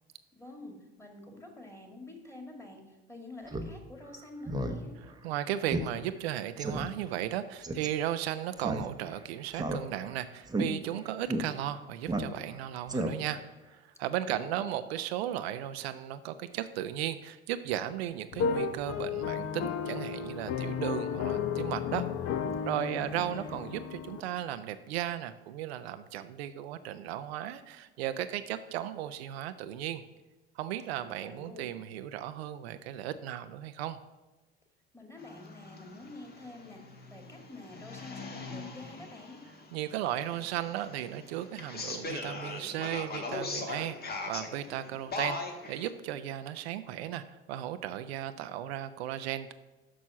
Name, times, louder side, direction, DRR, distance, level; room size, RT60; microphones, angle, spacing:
voice 1, 0.3-4.9 14.1-14.7 22.8-23.8 31.0-31.8 34.9-36.8 37.1-39.4, left 2 dB, 10° left, 2 dB, 2.0 m, -48 dB
Speech synthesizer, 3.5-3.7 4.1-4.2 4.5-4.8 5.1-5.2 5.7-5.9 6.2-6.3 6.6-6.9 7.6-7.9 8.6-9.2 9.5-10.1 10.5-10.7 11.3-11.4 12.1-12.6 12.9-13.4, right 1 dB, 10° right, 0.8 m, -32 dB
voice 2, 5.2-13.4 13.7-22.0 22.6-30.0 30.6-34.0 39.7-49.5, right 12 dB, 75° right, 11 dB, 0.5 m, -35 dB
sound 1, 18.3-24.2, left 6 dB, 50° left, 0.8 m, -33 dB
sound 2, 35.2-45.9, left 3 dB, 30° left, 1.4 m, -41 dB
6.2 x 6.1 x 5.6 m, 1.1 s
hypercardioid pair, 70°, 31 cm